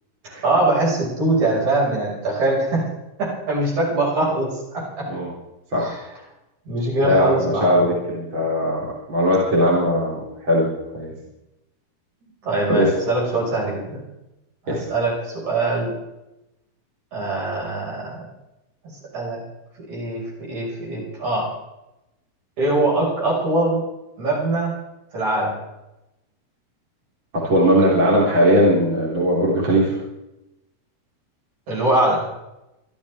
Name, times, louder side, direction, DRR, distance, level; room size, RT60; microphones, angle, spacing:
voice 1, 0.4-2.9 3.2-5.1 5.8-6.0 6.7-7.8 12.4-14.0 14.6-15.9 17.1-18.3 18.8-19.4 19.8-21.5 22.6-23.8 24.2-24.8 25.1-25.6 31.7-32.2, right 2 dB, 55° right, -4 dB, 7.3 m, -22 dB
voice 2, 7.0-11.1 12.7-12.9 14.7-14.8 27.3-30.0, equal, 35° right, -5 dB, 4.1 m, -19 dB
26.0 x 13.0 x 3.7 m, 0.93 s
omnidirectional pair, 4.0 m